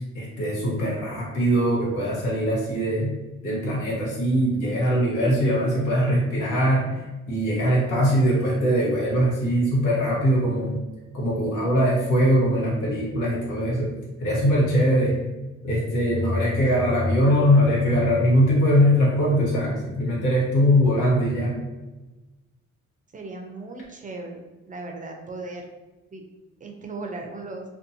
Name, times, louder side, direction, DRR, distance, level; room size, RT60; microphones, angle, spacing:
voice 1, 0.1-3.1 3.4-7.0 7.3-10.8 11.1-13.9 14.2-15.2 15.6-21.6, equal, 85° left, -4 dB, 1.1 m, -21 dB
voice 2, 23.1-25.7 26.1-26.2 26.6-27.6, right 3 dB, 25° right, 2 dB, 0.4 m, -37 dB
2.5 x 2.3 x 2.6 m, 1.1 s
cardioid pair, 90°, 30 cm